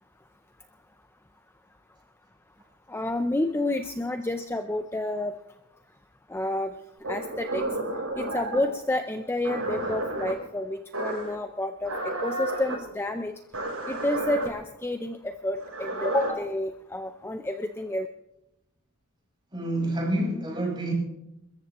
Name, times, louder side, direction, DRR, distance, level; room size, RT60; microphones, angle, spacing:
voice 1, 2.9-5.3 6.3-6.7 7.1-7.6 8.2-13.3 13.9-18.1, left 1 dB, 10° left, 0.5 m, -29 dB
sound 1, 7.0-8.7 9.4-10.3 10.9-11.4 11.8-12.8 13.5-14.5 15.6-16.3, right 2 dB, 90° right, 7.4 m, -31 dB
voice 2, 19.5-20.9, right 1 dB, 20° right, 6.1 m, -28 dB
29.0 x 14.0 x 3.0 m
head